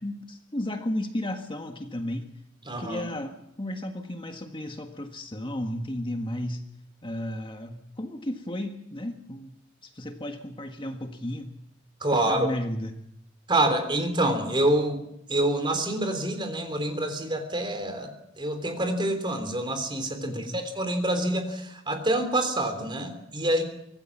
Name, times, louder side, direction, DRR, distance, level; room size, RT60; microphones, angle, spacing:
voice 1, 0.0-2.3 2.8-6.7 7.0-9.6 9.8-11.5 12.1-12.9 20.2-20.6, left 1 dB, 25° left, 5 dB, 1.6 m, -34 dB
voice 2, 2.7-3.0 12.0-12.5 13.5-15.0 15.3-18.1 18.4-23.6, right 1 dB, 25° right, 7 dB, 3.6 m, -26 dB
25.0 x 18.0 x 7.4 m, 0.75 s
head